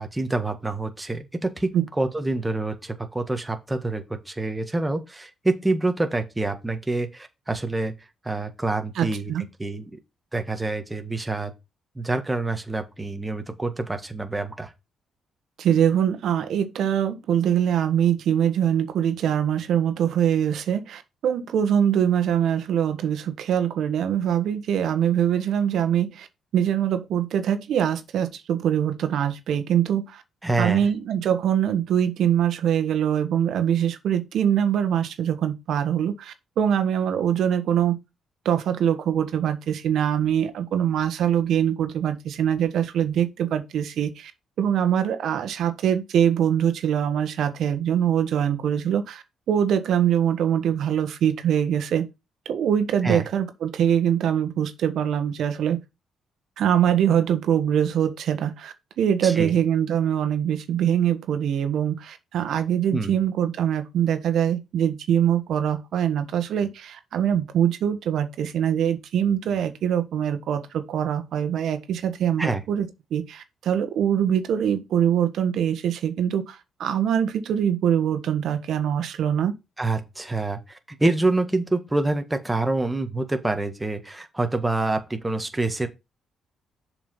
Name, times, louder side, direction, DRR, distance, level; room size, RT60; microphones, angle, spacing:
voice 1, 0.0-1.7 2.0-7.9 8.2-9.3 9.6-10.0 10.3-11.5 11.9-14.7 30.4-30.9 53.0-53.2 59.2-59.6 62.9-63.2 72.4-72.6 79.8-85.9, right 2 dB, 15° right, 1.6 m, -26 dB
voice 2, 8.9-9.4 15.6-26.3 26.5-30.2 30.6-38.0 38.4-44.3 44.6-52.1 52.4-55.8 56.6-79.5, right 9 dB, 70° right, 1.4 m, -23 dB
7.1 x 5.0 x 5.4 m
cardioid pair, 90°, 0 cm